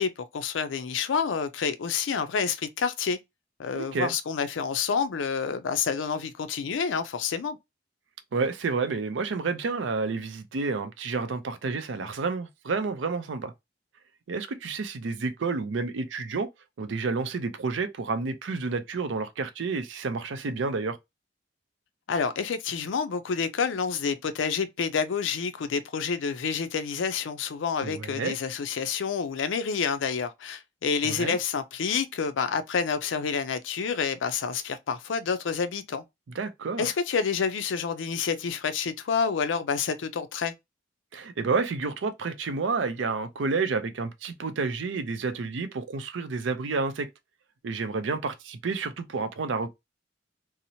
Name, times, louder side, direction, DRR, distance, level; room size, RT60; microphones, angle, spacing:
voice 1, 0.0-3.2 3.6-7.6 22.1-36.0 36.8-40.5, left 6 dB, 90° left, 0.4 m, -28 dB
voice 2, 3.7-4.1 8.3-13.5 14.3-16.5 16.8-21.0 27.8-28.4 31.0-31.4 36.3-36.9 41.1-47.1 47.6-49.7, right 4 dB, 85° right, 0.5 m, -30 dB
2.8 x 2.0 x 2.6 m
head